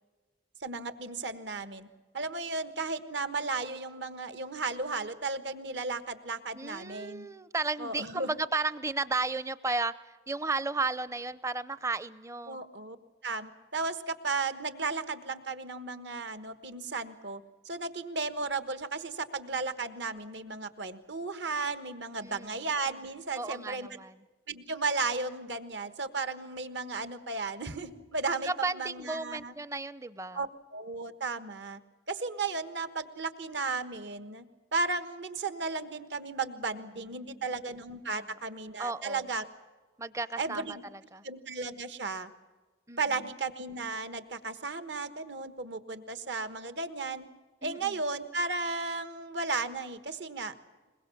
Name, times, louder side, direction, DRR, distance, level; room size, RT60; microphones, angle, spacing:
voice 1, 0.6-1.9 2.1-7.3 7.8-8.4 12.5-13.0 13.2-23.9 24.5-29.6 30.3-30.5 30.7-31.8 32.1-34.4 34.7-39.4 40.4-40.8 41.2-42.3 43.0-47.3 47.6-50.5, right 3 dB, 65° right, 11 dB, 1.4 m, -34 dB
voice 2, 6.5-9.9 10.3-12.6 22.2-22.5 23.4-24.1 28.5-30.4 37.2-37.4 38.8-39.2 40.0-40.8 41.1-41.2 42.9-43.0 47.6-48.0, right 3 dB, 15° right, 16 dB, 0.6 m, -34 dB
22.0 x 21.5 x 7.1 m, 1.3 s
head